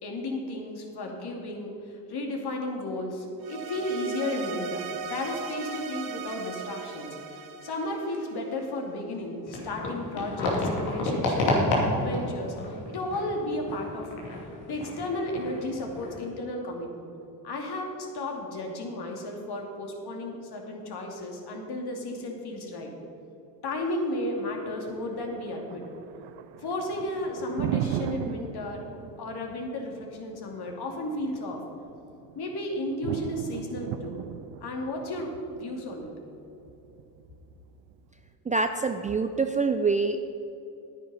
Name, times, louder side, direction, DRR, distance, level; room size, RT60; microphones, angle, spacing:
voice 1, 0.0-11.5 11.8-14.2 14.7-17.1 17.4-22.9 23.6-25.9 26.6-28.9 29.2-31.7 32.3-34.2 34.6-36.1, left 1 dB, 50° left, 1 dB, 2.6 m, -33 dB
sound 1, 3.4-8.7, right 5 dB, 45° right, 1.1 m, -38 dB
sound 2, 9.5-16.2, left 1 dB, 85° left, 2.8 m, -30 dB
Thunder, 24.2-38.2, right 12 dB, 65° right, 0.7 m, -38 dB
voice 2, 38.5-40.3, right 4 dB, 15° right, 7 dB, 0.4 m, -26 dB
10.0 x 9.7 x 5.6 m, 3.0 s
supercardioid pair, 70°, 50 cm